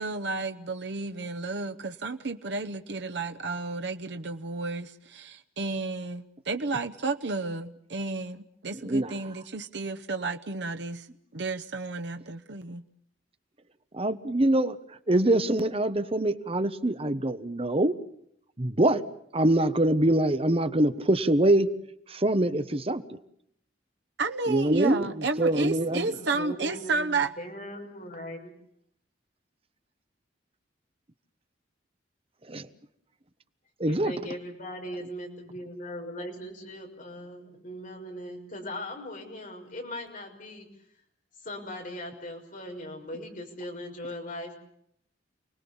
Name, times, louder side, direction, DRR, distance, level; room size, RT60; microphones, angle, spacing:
voice 1, 0.0-11.1 11.3-12.8 24.2-27.3, right 3 dB, 65° right, 6 dB, 0.9 m, -32 dB
voice 2, 8.8-9.1 13.9-14.8 15.1-18.0 18.6-19.0 19.3-21.7 22.1-23.0 24.5-26.1 32.5-32.7 33.8-34.1, right 1 dB, 30° right, 11 dB, 1.0 m, -24 dB
voice 3, 26.1-27.1 27.4-28.5 33.9-40.7 41.4-44.5, left 1 dB, 45° left, 2 dB, 6.2 m, -39 dB
29.0 x 20.0 x 7.1 m, 0.72 s
head